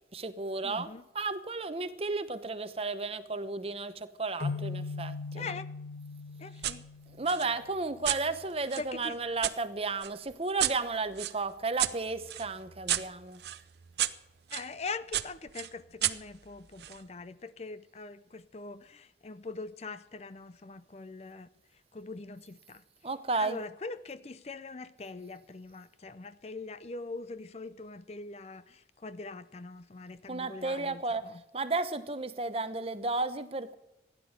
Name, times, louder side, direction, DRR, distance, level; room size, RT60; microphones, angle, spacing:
voice 1, 0.1-5.5 7.2-13.4 23.0-23.6 30.3-33.8, right 3 dB, 35° right, 0.8 m, -33 dB
voice 2, 0.6-1.0 5.3-5.7 6.4-6.8 8.8-9.2 14.5-21.5 21.9-22.8 23.4-31.4, left 3 dB, 35° left, 0.5 m, -42 dB
sound 1, 4.4-7.9, left 4 dB, 90° left, 1.6 m, -39 dB
sound 2, 6.6-6.8 7.3-9.6 10.0-14.7 15.1-17.0, right 12 dB, 65° right, 0.7 m, -34 dB
15.5 x 10.5 x 6.6 m
head